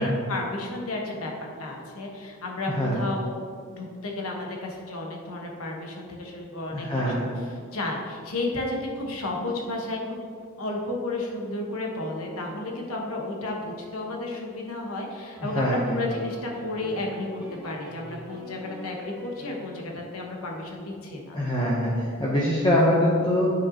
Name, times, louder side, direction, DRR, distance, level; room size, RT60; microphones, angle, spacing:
voice 1, 0.0-1.3 1.6-3.3 3.7-6.9 7.2-7.3 7.7-10.2 10.6-21.4, left 2 dB, 75° left, 0 dB, 1.2 m, -32 dB
voice 2, 2.7-3.0 6.7-7.4 15.4-16.0 21.3-23.5, left 1 dB, 20° left, -5 dB, 0.7 m, -24 dB
sound 1, 15.3-20.0, equal, 10° right, 1.7 m, -43 dB
9.2 x 5.5 x 2.8 m, 2.2 s
head